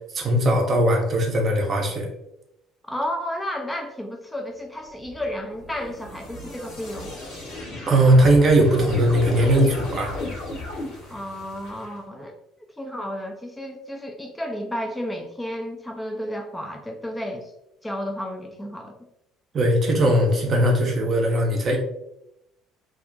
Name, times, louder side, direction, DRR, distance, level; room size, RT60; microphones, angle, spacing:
voice 1, 0.1-2.1 7.9-10.1 19.5-21.8, right 1 dB, 40° right, 1 dB, 0.6 m, -19 dB
voice 2, 2.9-7.1 11.1-12.3 12.8-17.5 17.8-19.0, equal, 10° left, 1 dB, 0.4 m, -32 dB
sound 1, 4.9-12.0, left 2 dB, 60° left, 0.8 m, -35 dB
2.4 x 2.1 x 2.5 m, 0.84 s
figure-of-eight pair, 55°, 0 cm